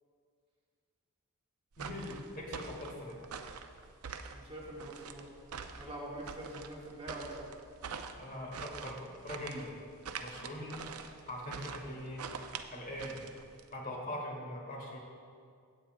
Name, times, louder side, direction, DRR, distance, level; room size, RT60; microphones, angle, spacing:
sound 1, 1.7-13.7, right 6 dB, 80° right, 0.5 m, -45 dB
voice 1, 1.8-3.2 8.2-9.8 10.2-12.2 12.7-13.2 13.7-15.0, left 1 dB, 40° left, -1 dB, 1.6 m, -42 dB
voice 2, 4.3-5.3 5.7-7.5, right 1 dB, 25° right, -4 dB, 1.6 m, -44 dB
16.5 x 8.5 x 2.3 m, 2.2 s
head